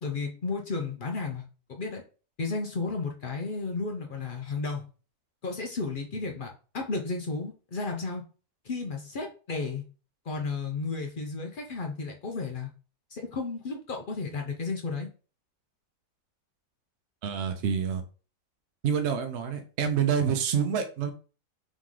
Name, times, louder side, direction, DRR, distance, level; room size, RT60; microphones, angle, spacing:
voice 1, 0.0-2.0 2.4-4.9 5.4-8.2 8.6-9.8 10.2-12.7 13.1-15.1, left 4 dB, 60° left, 2 dB, 0.5 m, -33 dB
voice 2, 17.2-18.0 18.8-21.1, right 7 dB, 60° right, 5 dB, 0.7 m, -27 dB
3.8 x 3.1 x 3.7 m, 0.36 s
omnidirectional pair, 1.8 m